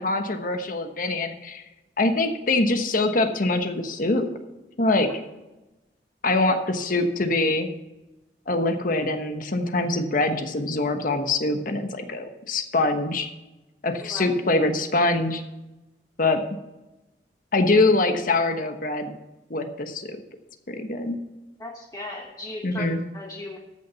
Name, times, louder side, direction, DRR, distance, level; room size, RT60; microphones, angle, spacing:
voice 1, 0.0-1.6 2.0-4.3 4.8-5.1 6.2-7.7 8.5-13.3 13.8-15.4 16.2-16.4 17.5-19.1 19.5-20.2 20.7-21.2 22.6-23.0, left 2 dB, 50° left, 7 dB, 1.2 m, -24 dB
voice 2, 14.0-14.4 21.6-23.6, left 2 dB, 20° left, 1 dB, 1.1 m, -37 dB
14.0 x 6.9 x 5.7 m, 1.0 s
head